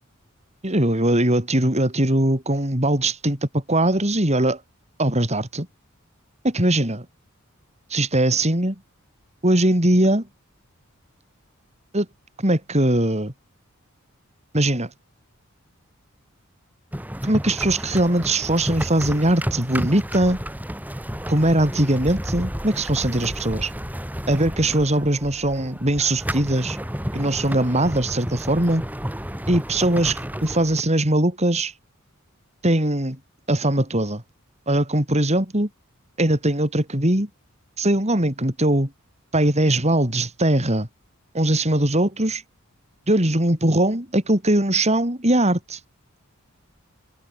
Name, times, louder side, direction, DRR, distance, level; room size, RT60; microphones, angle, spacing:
voice 1, 0.6-4.6 5.0-5.7 6.4-7.0 7.9-8.8 9.4-10.3 11.9-12.1 12.4-13.3 14.5-14.9 17.2-20.4 21.3-23.7 24.3-26.8 27.1-28.8 29.5-31.7 32.6-33.2 33.5-34.2 34.7-35.7 36.2-37.3 37.8-38.9 39.3-40.9 41.3-42.4 43.1-45.8, right 1 dB, 30° right, 5.0 m, -21 dB
sound 1, 16.9-30.8, equal, 10° right, 3.8 m, -31 dB
head